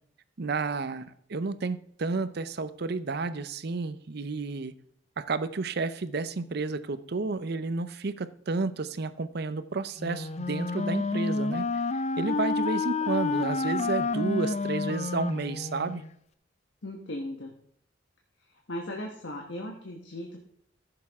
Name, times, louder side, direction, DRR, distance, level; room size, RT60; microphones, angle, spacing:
voice 1, 0.4-4.8 5.2-11.7 12.2-16.0, right 3 dB, 60° right, 13 dB, 0.6 m, -31 dB
Wind instrument woodwind instrument, 10.0-16.1, left 3 dB, 35° left, 0.5 m, -29 dB
voice 2, 16.8-17.5 18.7-20.4, left 1 dB, 70° left, 1 dB, 1.3 m, -37 dB
14.5 x 6.9 x 3.5 m, 0.68 s
head